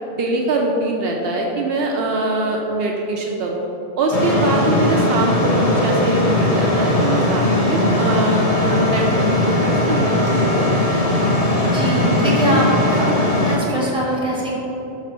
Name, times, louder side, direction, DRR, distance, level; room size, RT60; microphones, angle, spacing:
voice 1, 0.1-3.6 4.0-10.9, right 2 dB, 70° right, 0 dB, 0.8 m, -23 dB
sound 1, 4.1-13.6, left 1 dB, 40° left, 0.8 m, -18 dB
voice 2, 11.7-13.1 13.4-14.5, right 1 dB, 5° right, -7 dB, 1.4 m, -22 dB
5.0 x 4.3 x 5.9 m, 3.0 s
omnidirectional pair, 1.1 m